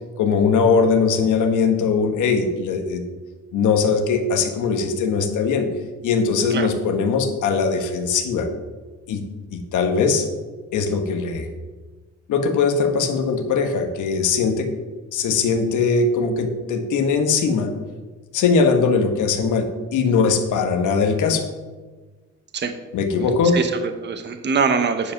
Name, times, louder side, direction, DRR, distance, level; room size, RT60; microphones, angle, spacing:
voice 1, 0.2-3.0 3.5-5.7 6.0-8.5 9.1-9.2 9.5-10.3 10.7-11.5 12.3-14.7 15.1-17.7 18.3-21.4 22.9-23.6, left 5 dB, 80° left, 5 dB, 1.4 m, -20 dB
voice 2, 23.5-25.1, right 5 dB, 35° right, 7 dB, 0.9 m, -23 dB
9.9 x 5.3 x 5.9 m, 1.3 s
cardioid pair, 90°, 30 cm